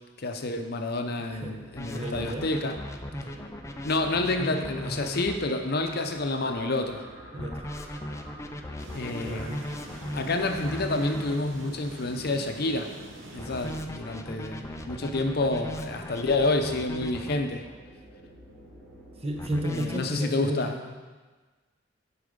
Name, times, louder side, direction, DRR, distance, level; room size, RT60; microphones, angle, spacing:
voice 1, 0.2-2.8 3.8-7.0 8.9-9.6 10.1-12.9 13.3-17.7 19.7-20.7, left 2 dB, 55° left, 5 dB, 0.7 m, -29 dB
sound 1, 1.3-20.1, right 1 dB, 10° right, 2.8 m, -49 dB
sound 2, 1.8-5.4 7.4-11.4 13.4-17.4 19.4-20.0, left 1 dB, 15° left, 0.5 m, -37 dB
voice 2, 1.9-2.5 3.1-3.4 4.8-5.1 7.3-7.7 9.0-9.7 19.2-21.0, equal, 30° right, 2 dB, 0.9 m, -34 dB
sound 3, 8.8-13.8, right 1 dB, 85° right, 0.9 m, -45 dB
8.3 x 4.8 x 5.3 m, 1.3 s
head